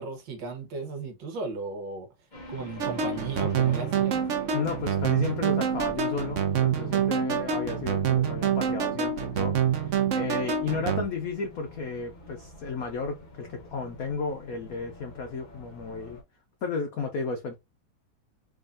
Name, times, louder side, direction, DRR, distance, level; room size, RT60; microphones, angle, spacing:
voice 1, 0.0-2.1 2.5-4.2, right 3 dB, 65° right, 1.6 m, -36 dB
sound 1, 2.3-16.2, left 1 dB, 30° left, 0.9 m, -47 dB
sound 2, 2.8-11.0, right 7 dB, 85° right, 0.6 m, -26 dB
voice 2, 4.5-16.2 16.6-17.5, left 4 dB, 80° left, 0.7 m, -33 dB
3.7 x 3.6 x 2.5 m
omnidirectional pair, 2.4 m